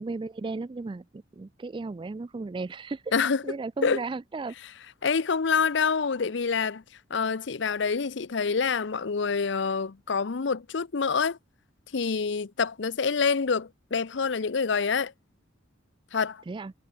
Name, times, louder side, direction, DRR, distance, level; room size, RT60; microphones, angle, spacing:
voice 1, 0.0-3.1 3.4-4.5 16.5-16.7, right 3 dB, 25° right, 0.3 m, -35 dB
voice 2, 3.1-3.4 3.8-4.0 5.0-6.8 7.1-11.4 11.9-15.1 16.1-16.4, left 5 dB, 65° left, 0.6 m, -26 dB
head